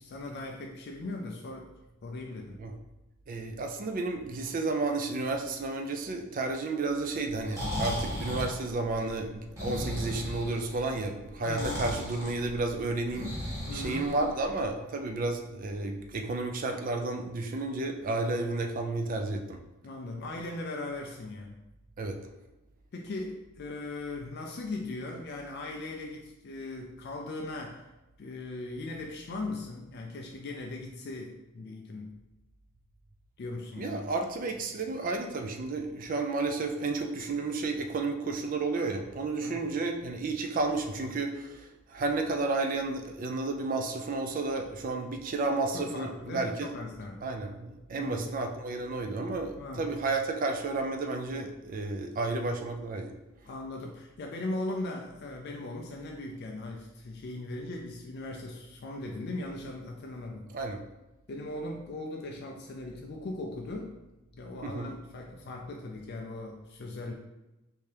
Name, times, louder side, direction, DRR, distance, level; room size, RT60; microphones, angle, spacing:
voice 1, 0.0-1.7 2.0-2.6 11.5-11.9 13.7-14.1 19.8-21.6 22.9-27.9 28.2-32.2 33.4-34.0 39.4-39.6 45.7-47.2 47.9-48.2 49.5-49.8 53.4-60.5 61.3-64.0 64.3-67.1, left 2 dB, 45° left, 1 dB, 0.3 m, -39 dB
voice 2, 3.3-19.6 22.0-22.2 33.8-46.7 47.2-53.1 60.5-60.8 64.6-64.9, right 3 dB, 40° right, 4 dB, 0.3 m, -32 dB
Breathing, 7.3-14.7, left 1 dB, 15° right, 0.8 m, -36 dB
3.4 x 2.7 x 3.3 m, 1.0 s
head